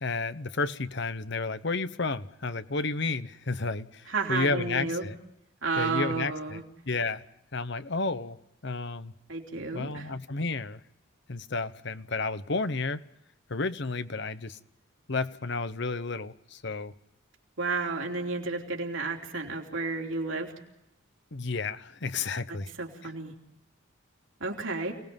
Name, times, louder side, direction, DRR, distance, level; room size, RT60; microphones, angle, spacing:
voice 1, 0.0-5.2 5.8-7.2 7.5-8.4 8.6-9.1 9.7-10.8 11.3-13.0 13.5-14.6 15.1-16.9 21.3-22.7 23.0-23.1, left 3 dB, 60° left, 1.1 m, -32 dB
voice 2, 4.1-5.1 5.6-6.6 9.3-10.1 17.6-20.5 22.8-23.3 24.4-24.9, right 3 dB, 70° right, 3.3 m, -31 dB
28.5 x 19.5 x 5.4 m
head